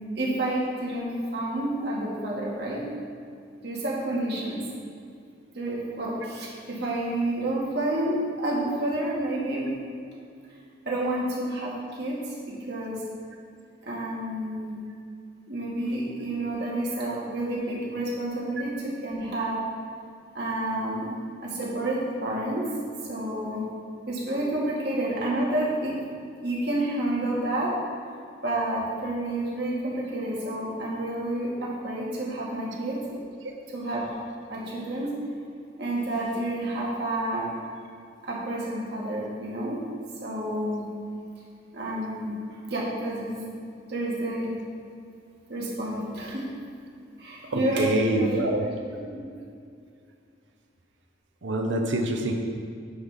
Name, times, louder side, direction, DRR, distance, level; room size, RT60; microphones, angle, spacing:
voice 1, 0.2-2.9 3.6-4.6 5.5-9.7 10.9-13.0 13.8-14.8 15.5-19.6 20.3-21.1 21.4-22.7 23.1-23.6 24.1-26.0 26.4-27.7 28.4-33.0 33.7-34.0 34.5-35.2 35.8-37.5 38.2-39.8 40.2-40.9 41.7-42.4 42.7-43.4 43.9-44.5 45.5-46.5 47.2-48.4 48.9-49.3, right 1 dB, 60° right, -5 dB, 1.9 m, -29 dB
voice 2, 47.5-48.7 51.4-52.3, right 1 dB, 85° right, 2 dB, 0.7 m, -25 dB
10.0 x 3.6 x 5.7 m, 2.3 s
head